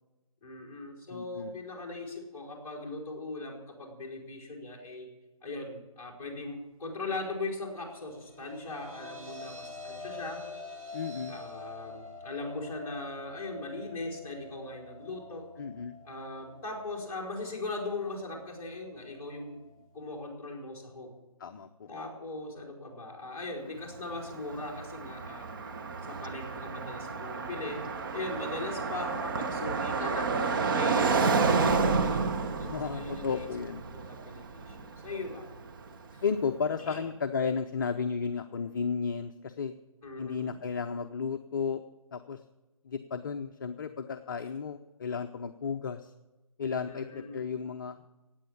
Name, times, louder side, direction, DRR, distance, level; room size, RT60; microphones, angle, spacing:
voice 1, 0.4-5.1 5.4-10.4 11.3-15.5 16.0-19.6 19.9-21.2 21.9-25.5 26.1-27.8 28.1-30.3 30.7-32.3 32.6-33.5 33.9-35.5 36.1-36.2 36.8-37.0 40.0-40.5 46.8-47.5, left 2 dB, 10° left, -5 dB, 3.9 m, -39 dB
voice 2, 1.1-1.5 10.9-11.3 15.6-16.0 21.4-21.9 32.6-33.8 36.2-39.7 40.2-41.8 42.1-42.4 42.8-46.1 46.6-48.0, left 6 dB, 35° left, 7 dB, 0.6 m, -33 dB
sound 1, 8.0-20.3, left 3 dB, 75° right, 6.1 m, -47 dB
Car passing by, 23.9-35.9, right 4 dB, 35° right, 1.1 m, -30 dB
16.0 x 9.3 x 7.1 m, 1.1 s
figure-of-eight pair, 155°, 19 cm